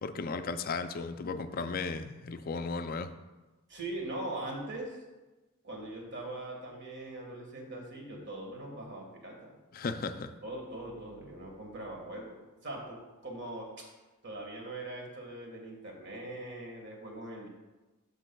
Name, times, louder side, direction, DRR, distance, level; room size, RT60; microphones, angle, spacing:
voice 1, 0.0-3.1 9.7-10.3, left 4 dB, 40° left, 9 dB, 0.4 m, -35 dB
voice 2, 3.7-5.0 5.6-9.5 10.0-12.4 12.6-13.7 14.2-17.5, right 1 dB, 55° right, 0 dB, 1.6 m, -41 dB
12.5 x 5.4 x 2.3 m, 1.1 s
head